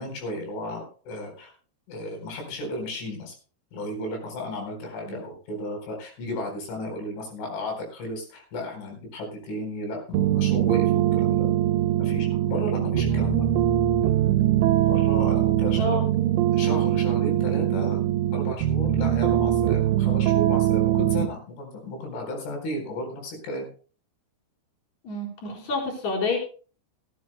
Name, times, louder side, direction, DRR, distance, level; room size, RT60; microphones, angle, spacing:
voice 1, 0.0-1.5 1.9-3.3 3.7-11.5 12.0-13.5 14.9-16.0 16.5-18.0 18.3-23.7, left 1 dB, 85° left, 3 dB, 6.7 m, -34 dB
sound 1, 10.1-21.3, right 12 dB, 80° right, 2.8 m, -22 dB
voice 2, 25.0-26.4, left 2 dB, 40° left, -1 dB, 5.5 m, -29 dB
19.0 x 15.0 x 2.2 m, 0.39 s
omnidirectional pair, 5.3 m